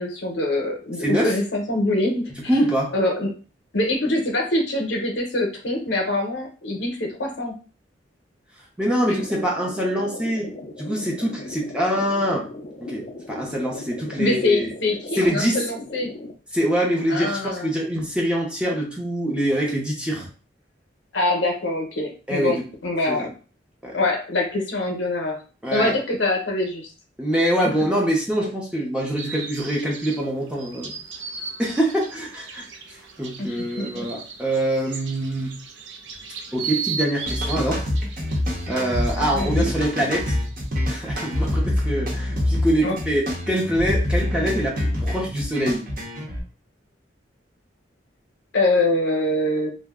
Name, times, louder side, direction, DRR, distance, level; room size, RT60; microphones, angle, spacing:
voice 1, 0.0-2.3 2.9-3.3 3.7-7.6 9.1-9.2 14.2-16.1 17.1-17.7 21.1-23.3 23.9-25.4 25.7-26.9 33.4-34.1 39.3-39.7 42.8-43.0 48.5-49.7, left 2 dB, 75° left, 2 dB, 0.7 m, -24 dB
voice 2, 1.0-1.3 2.3-2.9 8.8-10.5 10.8-12.5 12.8-14.7 15.2-15.6 16.5-20.3 22.3-22.6 23.1-23.3 23.8-24.0 25.6-26.0 27.2-30.9 31.6-35.6 36.5-37.9 38.7-40.4 40.9-45.9, right 1 dB, 5° right, -2 dB, 0.6 m, -24 dB
sound 1, 8.8-16.3, left 2 dB, 40° left, 0.4 m, -38 dB
sound 2, 29.2-40.7, right 6 dB, 75° right, 0.5 m, -36 dB
sound 3, 37.2-46.4, left 1 dB, 50° right, 0.9 m, -25 dB
2.5 x 2.1 x 3.5 m, 0.37 s
head